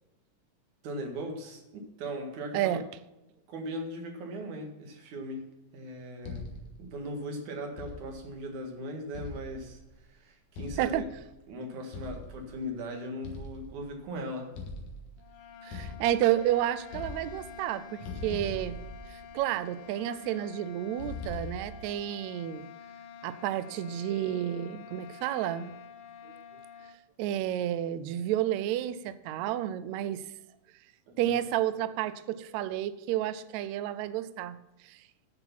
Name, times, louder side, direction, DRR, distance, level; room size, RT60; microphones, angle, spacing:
voice 1, 0.8-2.8 3.5-5.5 5.7-6.5 6.8-11.0 11.5-14.5 31.1-31.3, equal, 65° right, 2 dB, 3.1 m, -39 dB
sound 1, 6.2-6.9 7.8-8.4 9.1-10.0 10.6-11.3 11.9-12.5 13.2-14.0 14.6-15.2 15.7-16.5 16.8-17.7 18.0-19.5 21.0-22.0, left 3 dB, 70° left, 2.9 m, -42 dB
sound 2, 15.2-27.0, left 7 dB, 85° left, 2.6 m, -48 dB
voice 2, 15.6-18.8 19.1-22.7 23.2-25.8 27.2-30.2 31.2-34.6 34.8-35.0, right 12 dB, 90° right, 14 dB, 1.6 m, -31 dB
10.0 x 6.8 x 5.8 m, 1.0 s
omnidirectional pair, 3.9 m